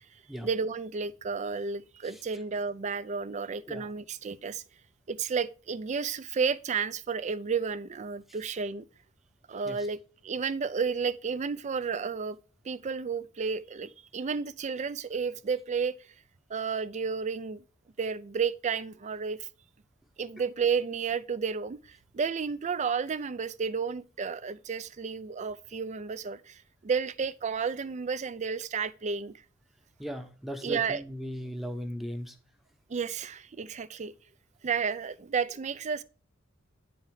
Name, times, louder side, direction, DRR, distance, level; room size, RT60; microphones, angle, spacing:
voice 1, 0.4-4.6 5.1-8.9 9.5-10.0 10.2-12.4 12.6-15.9 16.5-17.6 18.0-19.5 20.2-29.4 30.6-31.0 32.9-34.1 34.6-36.0, right 5 dB, 35° right, 0.4 m, -32 dB
voice 2, 30.0-32.3, equal, ahead, 0.9 m, -37 dB
9.6 x 4.3 x 4.7 m
head